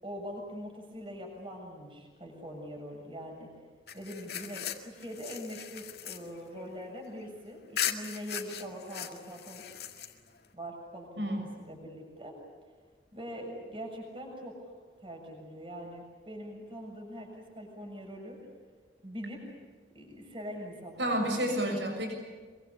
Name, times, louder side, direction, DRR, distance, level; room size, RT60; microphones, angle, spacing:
voice 1, 0.0-3.5 3.9-9.6 10.5-11.3 11.6-12.4 13.1-14.7 15.0-18.4 19.0-19.5 19.9-21.6, equal, 30° right, 1 dB, 6.9 m, -43 dB
sound 1, 3.9-7.3 7.8-10.5, left 9 dB, 65° left, 1.9 m, -38 dB
voice 2, 21.0-22.1, equal, 85° right, 3 dB, 6.7 m, -30 dB
25.0 x 23.5 x 8.6 m, 1.5 s
head